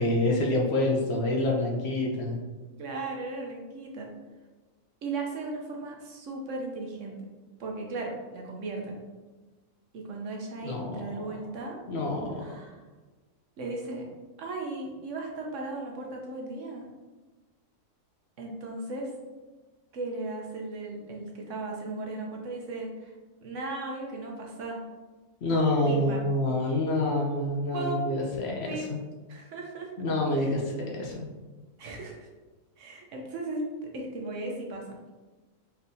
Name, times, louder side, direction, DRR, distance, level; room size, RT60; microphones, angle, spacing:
voice 1, 0.0-2.4 10.6-11.0 11.9-12.3 25.4-28.6 28.9-29.0 30.0-31.3, left 1 dB, 60° left, -1 dB, 0.8 m, -27 dB
voice 2, 2.8-4.1 5.0-7.2 7.6-9.0 9.9-11.8 12.4-12.8 13.6-14.1 14.4-16.9 18.4-19.1 19.9-23.1 23.4-24.8 25.9-26.2 27.7-28.1 28.6-28.9 29.3-29.9 30.3-30.6 31.8-32.3 32.8-33.6 33.9-35.0, right 2 dB, 70° right, 0 dB, 1.0 m, -36 dB
4.3 x 3.3 x 2.6 m, 1.2 s
omnidirectional pair, 1.4 m